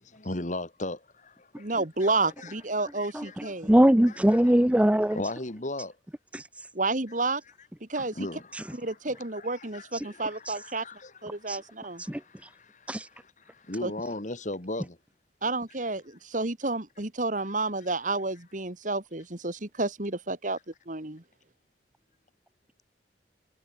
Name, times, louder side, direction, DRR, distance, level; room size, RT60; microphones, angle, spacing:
voice 1, 0.0-1.7 2.0-3.6 5.1-5.9 7.2-7.3 8.1-12.9 13.5-15.0, left 2 dB, 45° left, 2.2 m, -38 dB
voice 2, 1.6-3.7 6.7-7.4 7.8-8.1 8.8-10.8 11.2-12.0 13.8-13.9 15.4-20.6 20.9-21.2, right 3 dB, 45° right, 2.4 m, -30 dB
voice 3, 3.1-5.2 6.3-6.7 8.5-8.6 9.9-10.0 10.4-10.6 11.5-11.6 12.0-12.5 12.9-13.1, equal, 10° right, 0.6 m, -23 dB
head